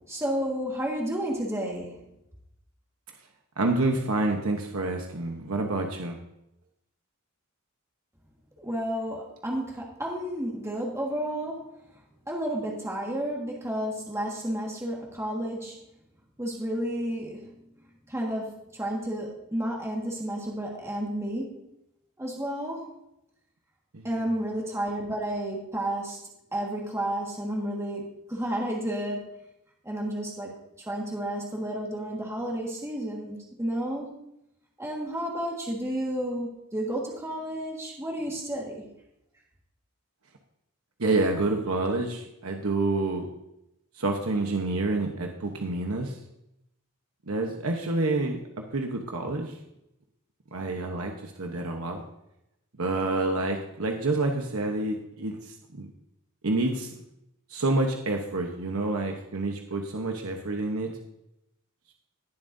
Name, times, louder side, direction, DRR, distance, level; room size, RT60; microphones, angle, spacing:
voice 1, 0.0-2.0 8.6-11.6 12.3-15.8 16.4-17.5 18.1-21.5 22.2-22.9 24.0-26.2 26.5-29.2 29.8-30.5 30.8-34.2 34.8-38.8, right 1 dB, 15° right, -2 dB, 1.7 m, -31 dB
voice 2, 3.6-6.2 23.9-24.1 41.0-43.3 44.0-46.1 47.3-48.4 48.7-49.5 50.5-52.0 52.8-55.9 56.4-56.9 57.5-61.0, right 2 dB, 70° right, 2 dB, 1.0 m, -28 dB
19.0 x 7.4 x 2.7 m, 0.83 s
head